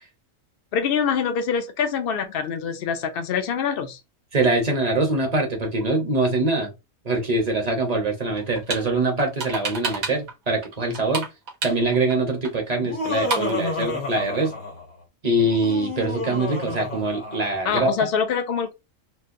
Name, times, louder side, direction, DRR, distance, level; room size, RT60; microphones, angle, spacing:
voice 1, 0.7-4.0 17.6-18.7, left 7 dB, 55° left, 0.7 m, -25 dB
voice 2, 4.3-6.7 7.0-11.3 11.6-14.5 15.2-18.1, right 2 dB, 35° right, 0.9 m, -23 dB
sound 1, 8.4-8.8 9.2-10.3 10.6-12.1 12.4-12.5 12.8-12.9 13.1-13.6, right 4 dB, 85° right, 1.5 m, -29 dB
Laughter, 12.7-14.9 15.4-17.7, left 3 dB, 75° left, 1.6 m, -30 dB
4.4 x 2.1 x 2.6 m
omnidirectional pair, 1.4 m